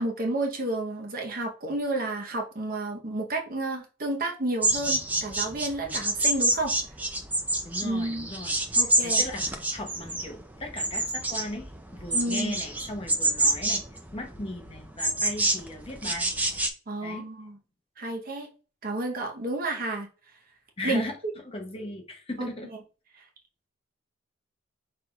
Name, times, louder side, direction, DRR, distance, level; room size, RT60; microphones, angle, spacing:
voice 1, 0.0-6.7 7.8-8.3 8.8-9.2 12.1-12.6 16.9-17.6 18.0-18.5 18.8-20.1 20.8-21.0 22.4-22.5 23.2-23.3, right 2 dB, 45° right, 0.8 m, -31 dB
sound 1, 4.6-16.7, right 2 dB, 10° right, 0.4 m, -27 dB
voice 2, 7.6-9.4 9.7-13.8 14.1-16.3 17.0-17.3 20.8-21.1 21.4-22.7, left 1 dB, 25° left, 0.7 m, -37 dB
5.5 x 3.3 x 2.3 m
head